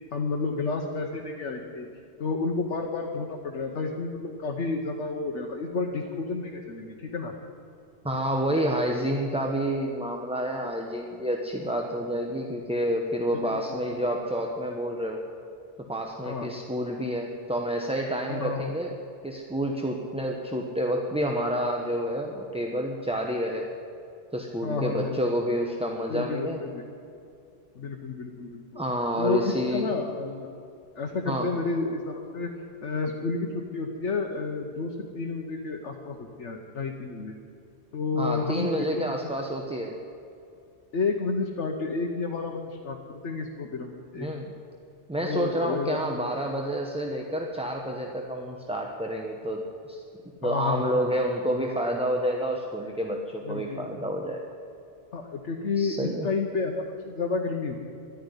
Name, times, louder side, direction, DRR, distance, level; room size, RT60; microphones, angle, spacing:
voice 1, 0.1-1.9 2.2-7.3 13.3-14.2 16.2-16.5 18.3-18.8 24.6-25.2 26.1-26.8 27.7-28.8 29.2-30.5 31.0-32.5 32.8-37.3 37.9-38.7 39.2-39.3 40.9-44.3 45.2-46.0 50.4-51.0 53.4-53.9 55.1-57.8, left 4 dB, 75° left, 1 dB, 1.3 m, -31 dB
voice 2, 8.0-15.2 15.8-18.9 19.2-23.7 24.3-26.6 28.7-29.9 31.2-31.5 38.2-39.9 44.1-44.5 45.1-50.0 50.4-54.4 55.8-56.3, equal, 5° right, 1 dB, 0.8 m, -29 dB
12.0 x 10.5 x 9.8 m, 2.6 s
omnidirectional pair, 1.2 m